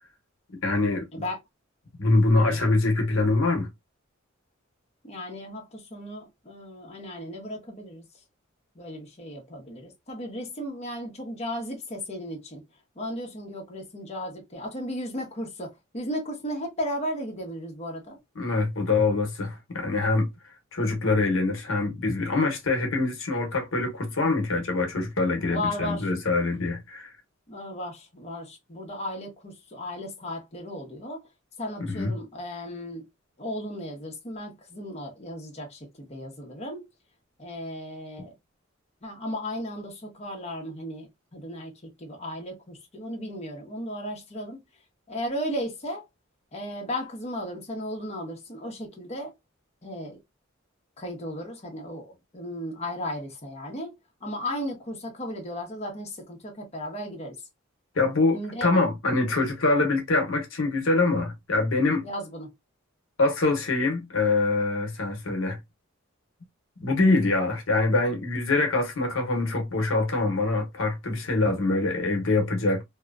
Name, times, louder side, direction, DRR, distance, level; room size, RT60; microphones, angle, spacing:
voice 1, 0.6-1.1 2.0-3.7 18.4-20.3 20.7-27.1 31.8-32.1 57.9-62.0 63.2-65.6 66.8-72.8, left 3 dB, 85° left, 0.9 m, -24 dB
voice 2, 5.0-8.0 8.7-12.6 13.0-18.2 25.4-26.1 27.5-31.3 31.6-33.1 33.4-36.9 37.4-38.3 39.0-44.6 45.1-46.1 46.5-49.3 49.8-50.2 51.0-53.9 54.2-57.4 58.3-58.7 62.0-62.5, equal, 35° left, 0.9 m, -35 dB
2.8 x 2.3 x 2.4 m
head